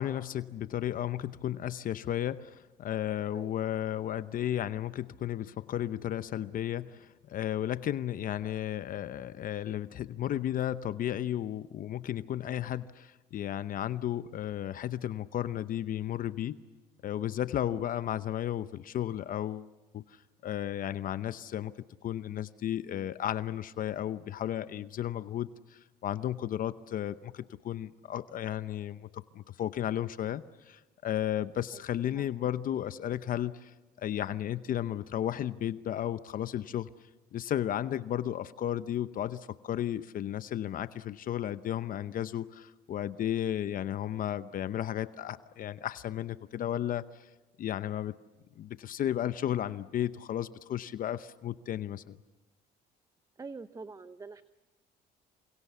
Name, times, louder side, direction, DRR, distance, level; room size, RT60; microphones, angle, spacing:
voice 1, 0.0-16.6 17.0-21.7 22.0-47.3 47.6-48.1 48.6-52.2, left 11 dB, 55° left, 14 dB, 0.8 m, -34 dB
voice 2, 53.4-54.4, right 4 dB, 20° right, 12 dB, 0.8 m, -45 dB
28.5 x 25.5 x 7.0 m, 1.1 s
cardioid pair, 110°, 17 cm